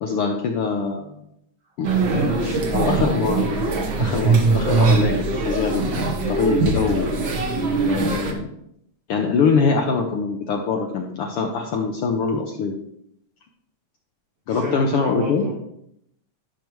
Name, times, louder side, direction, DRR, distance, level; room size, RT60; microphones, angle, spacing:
voice 1, 0.0-1.2 1.8-3.6 4.0-5.1 5.4-7.1 7.8-8.5 9.1-12.8 14.5-15.4, left 5 dB, 75° left, 2 dB, 1.3 m, -23 dB
sound 1, 1.8-8.3, right 4 dB, 55° right, 1.5 m, -21 dB
voice 2, 1.9-3.0 14.5-15.5, right 1 dB, 70° right, -9 dB, 3.7 m, -29 dB
12.0 x 6.5 x 3.1 m, 0.74 s
omnidirectional pair, 3.4 m